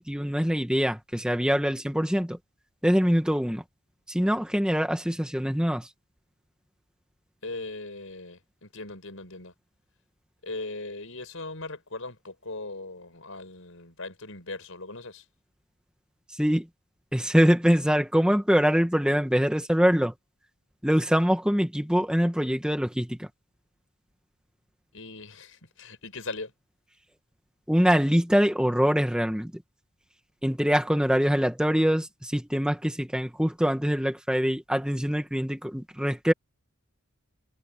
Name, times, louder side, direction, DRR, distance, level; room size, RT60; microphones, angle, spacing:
voice 1, 0.0-2.4 2.8-3.6 4.1-5.9 16.3-16.7 17.1-20.1 20.8-23.3 27.7-29.5 30.4-36.3, equal, 5° right, 1.8 m, -24 dB
voice 2, 7.4-9.5 10.4-15.2 24.9-26.5, left 2 dB, 70° left, 5.6 m, -39 dB
head